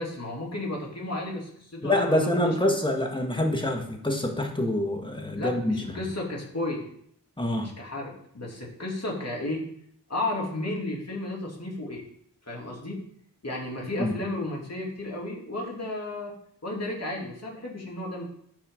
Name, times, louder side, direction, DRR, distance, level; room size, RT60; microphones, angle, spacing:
voice 1, 0.0-2.9 5.4-6.9 7.6-9.7 10.1-12.0 12.5-13.0 13.4-16.3 16.6-18.3, left 1 dB, 40° left, -2 dB, 2.7 m, -33 dB
voice 2, 1.8-6.0 7.4-7.7 14.0-14.1, left 1 dB, 10° left, 2 dB, 1.6 m, -26 dB
12.0 x 4.6 x 3.7 m, 0.67 s
cardioid pair, 55°, 40 cm